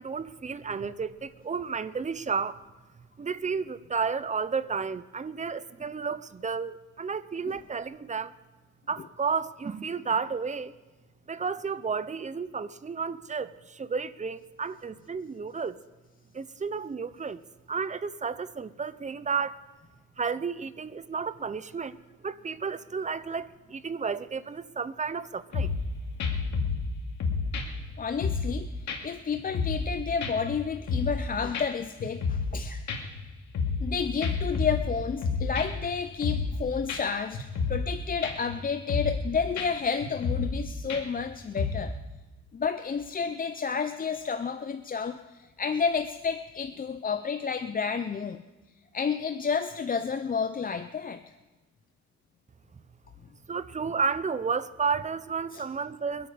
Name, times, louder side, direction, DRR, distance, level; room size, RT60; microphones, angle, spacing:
voice 1, 0.0-2.6 3.2-8.3 8.9-10.7 11.3-15.8 16.3-17.4 17.7-19.6 20.2-25.8 53.5-56.3, right 5 dB, 25° right, 15 dB, 0.7 m, -32 dB
sound 1, 25.5-25.9 26.2-26.9 27.2-28.6 28.9-29.0 29.3-29.9 30.2-31.2 31.5-31.7 32.0-32.6 32.9-33.9 34.2-35.9 36.2-36.6 36.9-37.0 37.3-37.9 38.2-38.6 38.9-39.3 39.6-39.7 40.0-40.6 40.9-41.2 41.6-41.7, left 4 dB, 65° left, 2.4 m, -30 dB
voice 2, 28.0-32.8 33.8-41.9 42.5-48.4 48.9-51.2 55.5-55.6, left 6 dB, 30° left, 9 dB, 0.6 m, -31 dB
23.0 x 8.7 x 5.1 m, 1.2 s
cardioid pair, 90°, 30 cm